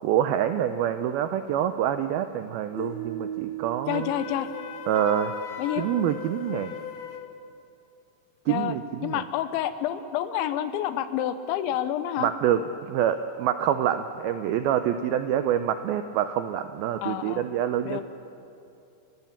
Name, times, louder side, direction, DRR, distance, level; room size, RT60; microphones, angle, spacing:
voice 1, 0.0-4.1 4.9-5.3 5.8-6.8 8.5-9.2 12.2-12.6 12.9-18.0, right 10 dB, 90° right, 9 dB, 2.1 m, -26 dB
sound 1, 2.8-5.9, right 8 dB, 10° left, 4.7 m, -38 dB
voice 2, 3.9-4.5 5.6-5.9 8.5-12.3 17.0-17.5 17.8-18.0, left 11 dB, 85° left, 11 dB, 3.3 m, -29 dB
Wind instrument woodwind instrument, 3.9-7.3, left 7 dB, 60° left, 2.3 m, -37 dB
29.5 x 16.5 x 7.2 m, 2.7 s
omnidirectional pair, 5.2 m